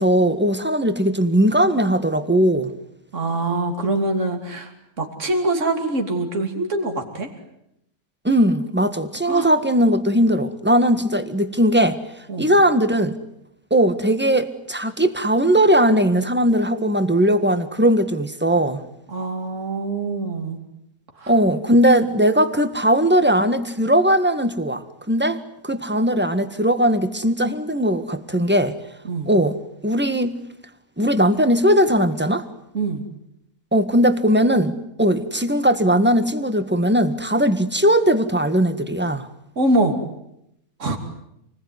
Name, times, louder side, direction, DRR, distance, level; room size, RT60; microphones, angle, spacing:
voice 1, 0.0-2.7 8.2-12.0 12.4-13.1 13.7-18.8 21.3-28.8 29.3-29.6 29.8-30.4 31.0-32.4 33.7-39.3, equal, 5° right, 10 dB, 1.6 m, -19 dB
voice 2, 3.1-4.7 5.0-7.3 9.3-9.5 12.3-12.5 19.1-20.6 21.2-21.3 29.1-29.3 32.7-33.0 39.6-40.0 40.8-41.0, right 2 dB, 50° right, 3 dB, 3.4 m, -24 dB
28.5 x 20.5 x 9.7 m, 0.80 s
omnidirectional pair, 1.6 m